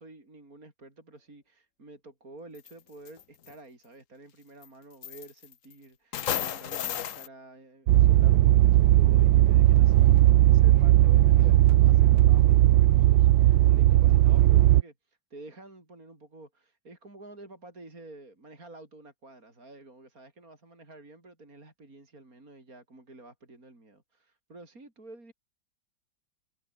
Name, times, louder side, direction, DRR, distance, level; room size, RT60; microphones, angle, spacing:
voice 1, 0.0-25.3, right 2 dB, 50° right, 6.0 m, -50 dB
sound 1, 2.5-2.7 3.1-3.5 4.6-4.7 5.0-5.7 6.1-7.3, left 10 dB, 55° left, 1.1 m, -33 dB
sound 2, 7.9-14.8, right 14 dB, 85° right, 1.5 m, -18 dB
omnidirectional pair, 2.0 m